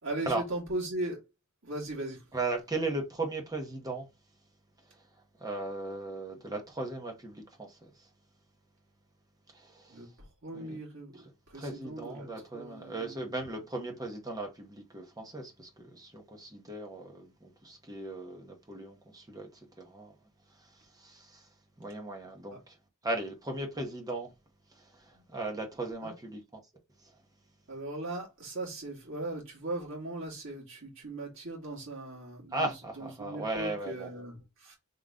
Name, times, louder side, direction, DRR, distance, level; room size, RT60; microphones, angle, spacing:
voice 1, 0.0-1.2 1.6-2.2 9.9-13.5 13.8-13.9 22.5-22.6 25.1-25.2 26.0-26.1 27.7-34.8, right 2 dB, 60° right, 2.2 m, -39 dB
voice 2, 2.3-4.1 5.4-8.1 9.5-10.0 10.5-10.8 11.5-20.1 20.9-21.5 21.8-22.7 23.0-24.3 24.7-26.4 27.0-27.1 32.5-34.1, right 2 dB, 15° right, 1.0 m, -37 dB
3.7 x 3.1 x 3.6 m
head